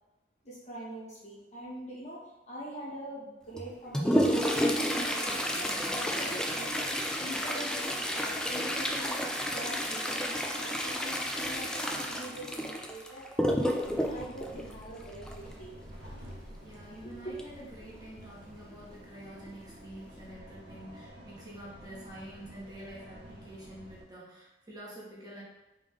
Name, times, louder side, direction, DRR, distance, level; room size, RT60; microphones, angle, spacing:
voice 1, 0.4-15.8 17.0-17.4, right 1 dB, 40° left, -6 dB, 1.2 m, -44 dB
Toilet flush, 3.5-15.5 17.4-17.5 17.8-17.9 18.7-18.8 19.5-19.7 20.1-20.3, equal, 5° left, 0.3 m, -31 dB
sound 1, 13.8-24.0, equal, 75° right, 1.1 m, -49 dB
voice 2, 16.6-25.4, right 1 dB, 20° right, -7 dB, 1.2 m, -47 dB
3.5 x 3.4 x 3.5 m, 0.98 s
head